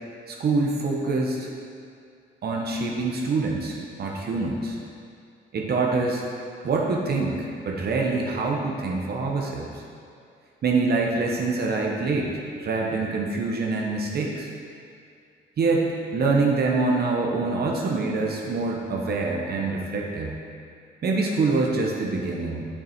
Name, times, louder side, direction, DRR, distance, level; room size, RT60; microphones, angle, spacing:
voice 1, 0.3-1.5 2.4-4.8 5.5-6.2 6.6-9.7 10.6-12.3 12.6-14.5 15.6-20.4 21.0-22.7, right 3 dB, 50° right, -1 dB, 1.0 m, -25 dB
6.6 x 6.2 x 4.4 m, 2.3 s
cardioid pair, 90°, 20 cm